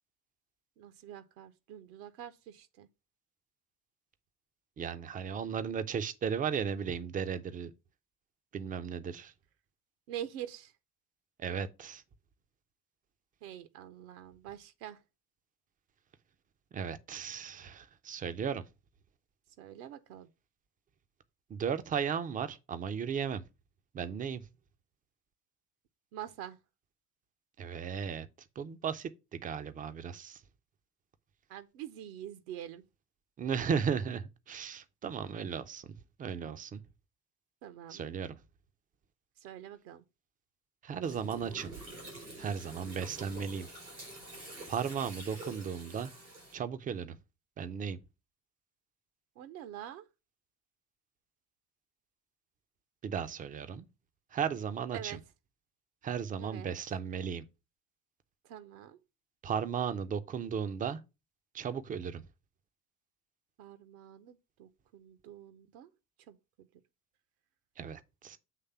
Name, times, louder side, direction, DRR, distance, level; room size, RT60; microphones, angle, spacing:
voice 1, 0.8-2.9 10.1-10.7 13.4-15.0 19.6-20.3 26.1-26.6 31.5-32.8 37.6-38.0 39.4-40.0 49.4-50.0 54.9-55.2 56.4-56.7 58.4-59.0 63.6-65.9 66.3-66.4, right 11 dB, 55° right, 0.7 m, -45 dB
voice 2, 4.8-7.7 8.5-9.3 11.4-12.0 16.7-18.6 21.5-23.4 23.9-24.4 27.6-28.3 28.6-30.4 33.4-36.8 37.9-38.4 40.8-41.7 42.4-43.7 44.7-46.1 46.5-47.2 47.6-48.0 53.0-53.8 54.3-55.2 56.0-57.4 59.4-61.0 61.5-62.2 67.8-68.4, right 7 dB, 20° right, 0.5 m, -35 dB
Gurgling, 41.0-46.5, right 1 dB, 85° right, 3.7 m, -47 dB
7.5 x 3.2 x 5.4 m
figure-of-eight pair, 60°, 50 cm